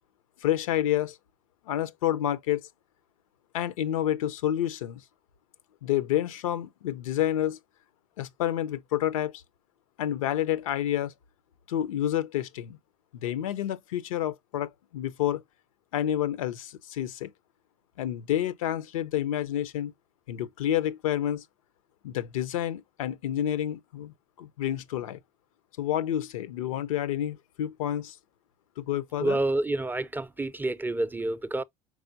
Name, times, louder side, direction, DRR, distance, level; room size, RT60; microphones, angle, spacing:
voice 1, 0.4-1.2 1.7-2.6 3.5-5.0 5.8-7.6 8.2-9.3 10.0-11.1 11.7-12.8 13.2-15.4 15.9-17.3 18.0-19.9 20.3-21.4 22.0-25.2 25.8-28.2 28.8-29.4, left 11 dB, 85° left, 0.6 m, -29 dB
voice 2, 29.2-31.6, right 2 dB, 10° right, 0.4 m, -28 dB
4.7 x 4.1 x 2.6 m
hypercardioid pair, 80°, 17 cm